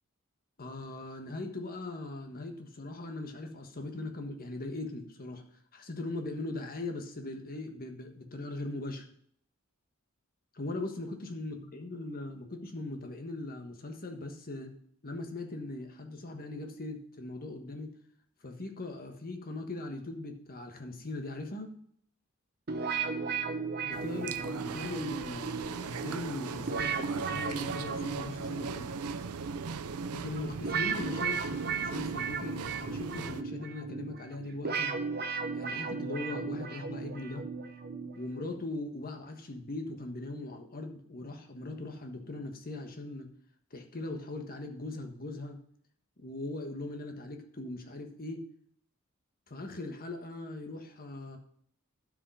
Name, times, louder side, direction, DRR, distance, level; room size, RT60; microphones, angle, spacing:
voice 1, 0.6-5.4 5.7-9.1 10.5-14.8 15.0-17.9 18.4-21.8 23.8-28.9 30.1-35.0 35.5-37.4 38.1-43.3 43.7-45.6 46.2-48.5 49.5-51.4, left 2 dB, 45° left, 4 dB, 1.4 m, -40 dB
sound 1, 22.7-38.6, right 5 dB, 50° right, 1.0 m, -36 dB
sound 2, 23.9-33.4, right 6 dB, 85° right, 0.5 m, -40 dB
12.0 x 5.1 x 5.6 m, 0.65 s
head